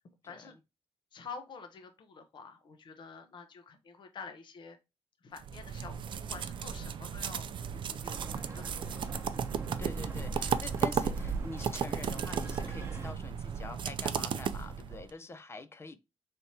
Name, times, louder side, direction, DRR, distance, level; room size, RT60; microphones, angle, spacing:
voice 1, 0.2-0.6 7.7-8.1 9.8-16.0, left 3 dB, 25° left, 0.5 m, -45 dB
voice 2, 1.1-4.8 5.2-7.5 8.0-9.1 15.1-15.2, left 5 dB, 50° left, 0.8 m, -48 dB
sound 1, 5.4-15.1, right 7 dB, 55° right, 0.4 m, -35 dB
sound 2, 8.1-13.1, right 3 dB, 25° right, 0.9 m, -40 dB
4.3 x 3.4 x 2.8 m
wide cardioid pair, 150°, 10 cm